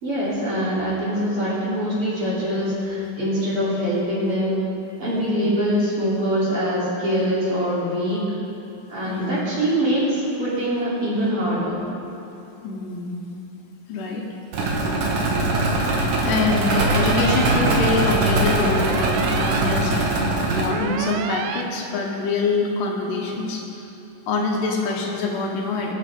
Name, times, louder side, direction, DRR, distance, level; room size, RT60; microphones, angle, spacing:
voice 1, 0.0-4.6 5.0-8.2 8.9-11.9, equal, 40° right, -9 dB, 3.6 m, -23 dB
voice 2, 9.0-9.5 12.6-13.3 13.9-14.3 14.8-15.0 16.0-20.0 20.5-23.6 24.3-25.9, left 3 dB, 80° left, -1 dB, 2.6 m, -25 dB
sound 1, 14.5-20.7, right 2 dB, 65° right, 2.6 m, -21 dB
sound 2, 16.7-17.6 18.7-19.6 20.7-21.6, right 9 dB, 85° right, 1.7 m, -30 dB
21.0 x 7.3 x 3.5 m, 2.9 s
omnidirectional pair, 3.9 m